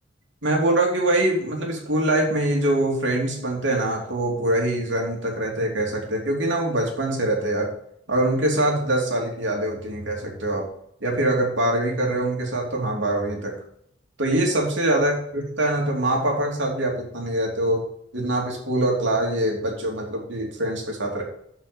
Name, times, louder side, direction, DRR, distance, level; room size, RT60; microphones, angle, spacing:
voice 1, 0.4-7.7 8.1-10.7 11.0-13.5 14.2-17.8 18.1-21.2, right 1 dB, 75° right, 0 dB, 2.9 m, -24 dB
8.0 x 5.8 x 7.0 m, 0.72 s
head